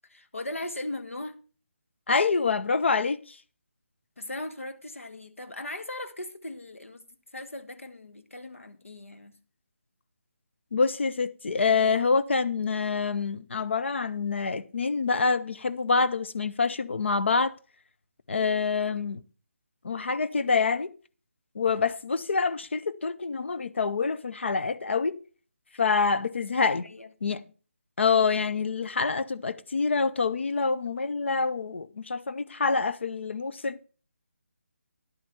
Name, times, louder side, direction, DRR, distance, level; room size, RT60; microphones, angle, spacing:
voice 1, 0.1-1.4 4.2-7.0 7.3-9.3 18.8-19.0 26.8-27.5, left 1 dB, 75° left, 1.3 m, -39 dB
voice 2, 2.1-3.4 10.7-17.5 18.3-19.2 19.8-20.9 21.5-25.2 25.8-26.9 27.2-27.4 28.0-33.8, left 4 dB, 60° left, 0.7 m, -26 dB
11.0 x 8.2 x 4.3 m
figure-of-eight pair, 150°, 7 cm